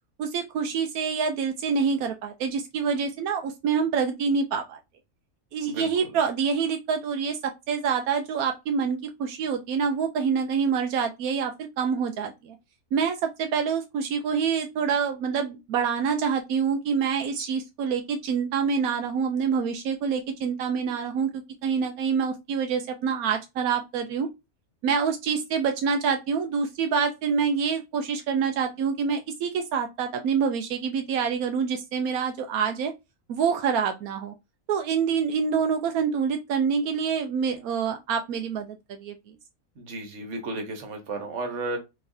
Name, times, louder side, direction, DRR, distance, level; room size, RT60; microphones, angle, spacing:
voice 1, 0.2-4.8 5.5-12.6 12.9-24.3 24.8-32.9 33.3-34.3 34.7-39.3, right 6 dB, 85° right, 1.1 m, -26 dB
voice 2, 5.7-6.1 39.8-41.8, right 2 dB, 60° right, 1.4 m, -33 dB
3.9 x 3.8 x 2.7 m
omnidirectional pair, 1.5 m